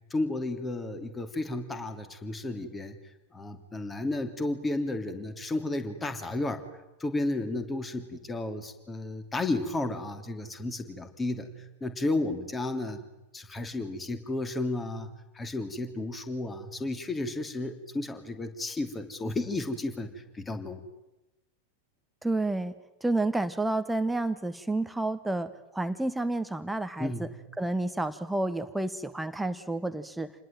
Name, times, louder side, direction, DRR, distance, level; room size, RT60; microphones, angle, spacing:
voice 1, 0.1-3.0 3.3-6.6 7.0-11.5 11.8-13.0 13.3-15.1 15.3-20.8 27.0-27.3, left 2 dB, 15° left, 9 dB, 3.0 m, -32 dB
voice 2, 22.2-22.7 23.0-27.3 27.6-30.5, right 2 dB, 5° right, 10 dB, 1.2 m, -30 dB
28.0 x 20.5 x 9.1 m, 1.0 s
figure-of-eight pair, 90°, 0 cm